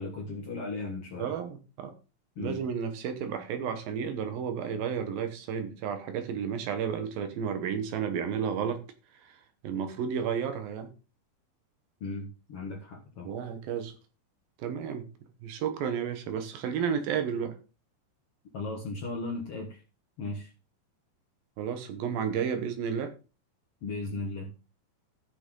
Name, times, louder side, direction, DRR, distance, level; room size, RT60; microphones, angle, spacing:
voice 1, 0.0-1.3 2.4-2.6 12.0-13.3 18.5-19.8 20.2-20.5 23.8-24.5, left 3 dB, 55° left, 1.7 m, -36 dB
voice 2, 1.2-1.9 2.4-8.8 9.2-9.4 9.6-10.9 13.2-13.9 14.6-15.1 15.4-17.5 21.6-23.1, right 7 dB, 70° right, 2.7 m, -32 dB
14.0 x 6.8 x 3.7 m
omnidirectional pair, 4.5 m